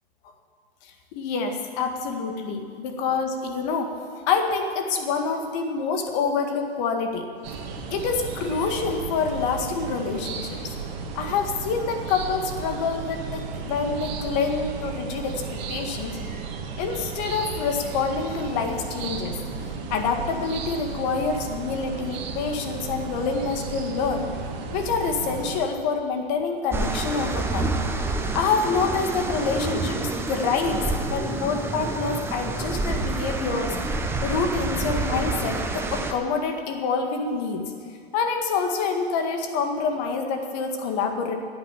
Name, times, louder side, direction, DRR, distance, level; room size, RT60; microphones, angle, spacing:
voice 1, 0.8-7.3 7.9-10.7 11.2-16.2 16.8-19.4 19.9-24.3 24.7-27.7 28.3-30.0 30.3-33.8 34.2-37.6 38.1-41.3, left 5 dB, 45° left, 5 dB, 1.9 m, -27 dB
sound 1, 7.4-25.7, right 5 dB, 45° right, 1.9 m, -34 dB
sound 2, 26.7-36.1, right 2 dB, 10° right, 0.8 m, -28 dB
11.0 x 9.0 x 9.9 m, 2.2 s
hypercardioid pair, 135°, 31 cm